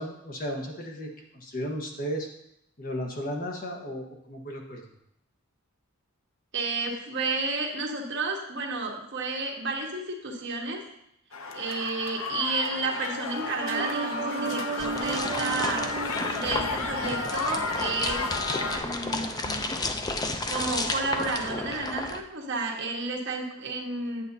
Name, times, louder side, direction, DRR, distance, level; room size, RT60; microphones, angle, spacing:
voice 1, 0.0-2.3 2.8-4.8, equal, 45° left, 1 dB, 1.2 m, -34 dB
voice 2, 6.5-10.8 11.5-15.9 16.3-18.2 18.7-19.7 20.5-24.2, right 3 dB, 60° right, 0 dB, 1.3 m, -31 dB
sound 1, 11.3-18.8, left 4 dB, 75° left, 0.7 m, -33 dB
sound 2, 13.6-17.8 18.2-18.3, right 5 dB, 40° right, 0.9 m, -35 dB
sound 3, 14.8-22.2, left 2 dB, 20° left, 0.4 m, -32 dB
8.2 x 8.0 x 2.7 m, 0.77 s
head